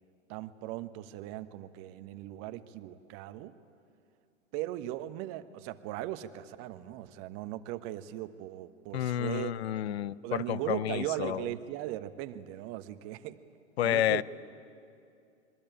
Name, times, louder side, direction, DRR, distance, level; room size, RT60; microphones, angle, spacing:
voice 1, 0.3-3.6 4.5-9.5 9.9-13.4 13.8-14.2, right 14 dB, 40° right, 10 dB, 1.2 m, -38 dB
voice 2, 8.9-11.4 13.8-14.2, left 12 dB, 60° left, 20 dB, 0.7 m, -30 dB
26.0 x 22.0 x 9.1 m, 2.5 s
figure-of-eight pair, 105°, 36 cm